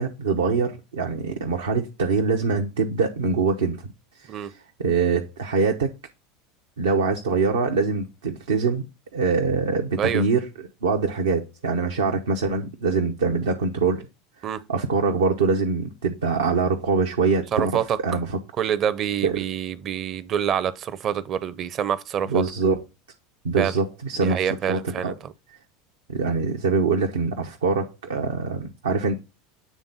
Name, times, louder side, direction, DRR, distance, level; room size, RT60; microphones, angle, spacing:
voice 1, 0.0-3.8 4.1-5.9 6.8-8.8 9.1-10.4 10.8-14.1 14.7-17.7 18.0-18.4 19.2-19.4 22.3-22.8 23.4-25.2 26.1-29.2, right 4 dB, 75° right, 0.7 m, -24 dB
voice 2, 17.5-18.0 18.6-22.4 23.6-23.7 24.2-25.3, right 9 dB, 40° right, 0.6 m, -26 dB
8.4 x 3.6 x 3.9 m
figure-of-eight pair, 75°, 0 cm